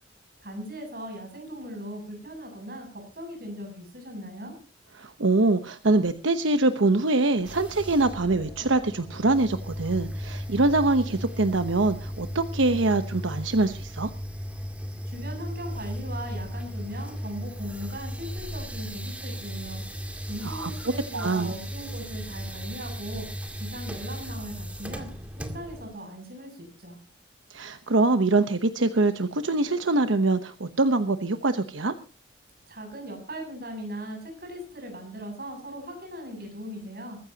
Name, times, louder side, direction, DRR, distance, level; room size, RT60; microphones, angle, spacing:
voice 1, 0.4-4.5 15.0-19.8 20.3-23.3 23.6-25.1 25.4-27.0 32.7-37.2, equal, 50° right, 3 dB, 7.8 m, -39 dB
voice 2, 5.0-14.1 20.4-21.5 27.5-31.9, right 2 dB, 80° right, 9 dB, 1.0 m, -24 dB
sound 1, 7.4-25.9, equal, 5° right, 2.1 m, -36 dB
22.5 x 14.5 x 2.9 m, 0.35 s
head